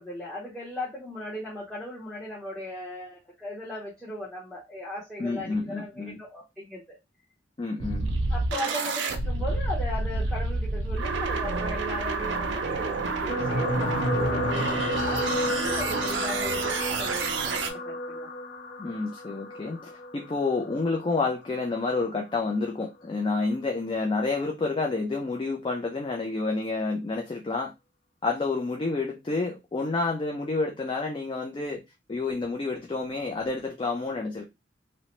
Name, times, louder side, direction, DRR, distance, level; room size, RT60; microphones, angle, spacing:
voice 1, 0.0-7.0 8.3-18.3, left 1 dB, 5° left, 0.7 m, -37 dB
voice 2, 5.2-6.2 7.6-8.1 18.8-27.7 28.2-31.8 32.1-34.4, left 3 dB, 30° left, 0.4 m, -29 dB
sound 1, 7.8-17.7, right 3 dB, 85° right, 0.4 m, -29 dB
sound 2, 13.3-21.7 22.5-22.7 23.0-23.1, left 1 dB, 75° left, 0.7 m, -31 dB
2.8 x 2.0 x 2.9 m
head